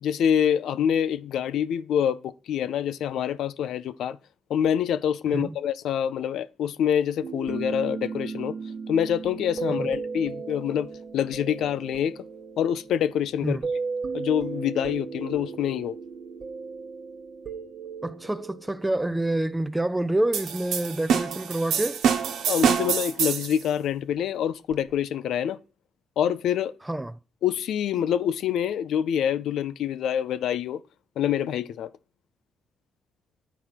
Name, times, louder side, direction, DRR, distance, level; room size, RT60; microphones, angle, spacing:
voice 1, 0.0-4.2 4.5-8.6 8.9-12.2 12.6-13.6 14.1-16.0 22.5-25.6 26.2-26.7 27.4-30.8 31.2-31.9, left 9 dB, 75° left, 0.6 m, -26 dB
sound 1, 7.2-20.4 24.7-24.9, right 5 dB, 45° right, 1.0 m, -36 dB
voice 2, 18.0-22.0 26.8-27.1, right 1 dB, 10° right, 0.4 m, -27 dB
sound 2, 20.3-23.6, right 7 dB, 80° right, 1.2 m, -25 dB
9.2 x 4.3 x 5.9 m
cardioid pair, 90°, 0 cm